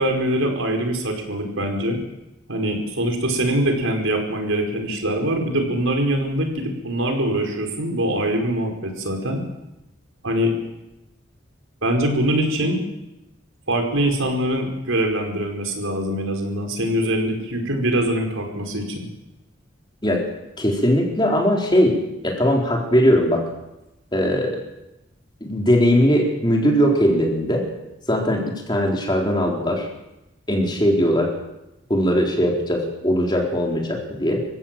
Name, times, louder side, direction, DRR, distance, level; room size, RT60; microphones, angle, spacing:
voice 1, 0.0-2.0 2.5-9.4 10.2-10.5 11.8-12.8 13.7-19.1, right 1 dB, 85° right, 3 dB, 5.1 m, -23 dB
voice 2, 20.6-23.5 24.1-24.6 25.4-27.7 28.1-29.9 30.5-31.3 31.9-34.5, equal, 20° left, 0 dB, 4.1 m, -20 dB
26.5 x 16.0 x 7.6 m, 0.94 s
head